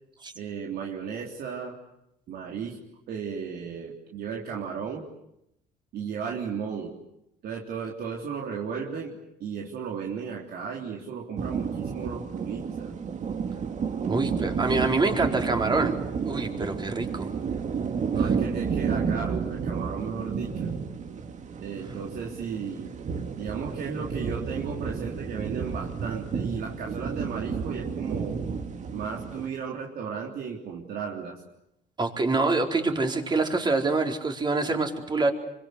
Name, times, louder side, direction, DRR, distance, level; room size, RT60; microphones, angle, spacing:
voice 1, 0.4-1.8 2.3-2.8 3.1-5.1 5.9-6.9 7.4-13.0 18.1-20.7 21.6-22.9 23.4-28.4 28.9-31.4, right 6 dB, 65° right, -1 dB, 3.6 m, -35 dB
sound 1, 11.4-29.5, right 6 dB, 45° right, 2.4 m, -31 dB
voice 2, 14.1-16.0 16.2-17.3 32.0-35.3, right 3 dB, 25° right, 3 dB, 4.3 m, -25 dB
27.0 x 25.0 x 8.2 m, 0.82 s
cardioid pair, 110°, 17 cm